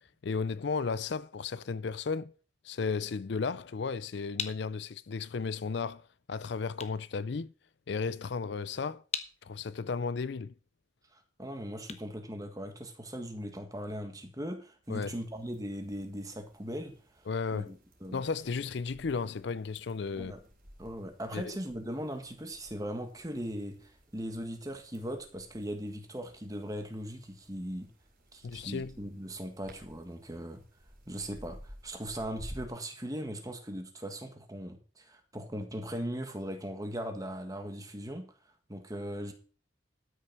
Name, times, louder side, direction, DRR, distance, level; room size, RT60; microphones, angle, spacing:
voice 1, 0.2-2.3 2.6-7.5 7.9-9.0 9.4-10.5 14.9-15.1 17.3-17.7 18.1-20.3 21.3-21.6 28.4-28.9, left 5 dB, 60° left, 0.4 m, -34 dB
sound 1, 4.3-13.1, left 7 dB, 35° left, 1.0 m, -45 dB
voice 2, 11.1-18.2 20.1-20.4 20.8-27.9 28.3-30.6 31.1-38.3 38.7-39.3, equal, 20° right, 1.7 m, -39 dB
sound 2, 14.8-32.7, equal, 45° right, 3.8 m, -55 dB
12.5 x 6.5 x 6.0 m
head